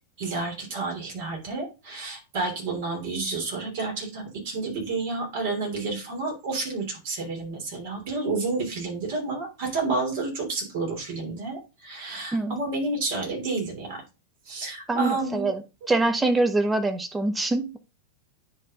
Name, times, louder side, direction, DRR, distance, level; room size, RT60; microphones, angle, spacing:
voice 1, 0.2-14.0 14.5-15.5, right 3 dB, 50° right, 1 dB, 3.2 m, -30 dB
voice 2, 14.9-17.8, right 2 dB, 10° right, 8 dB, 0.9 m, -24 dB
10.0 x 3.7 x 3.7 m, 0.29 s
figure-of-eight pair, 90°, 0 cm